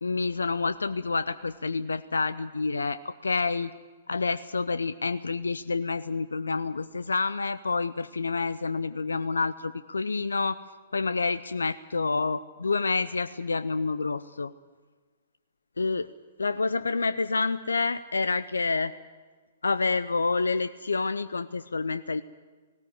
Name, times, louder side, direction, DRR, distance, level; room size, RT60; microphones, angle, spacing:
voice 1, 0.0-3.7 4.1-10.6 10.9-14.5 15.8-16.1 16.4-18.9 19.6-22.2, left 4 dB, 80° left, 14 dB, 0.7 m, -28 dB
19.0 x 18.0 x 9.6 m, 1.4 s
figure-of-eight pair, 115°, 0 cm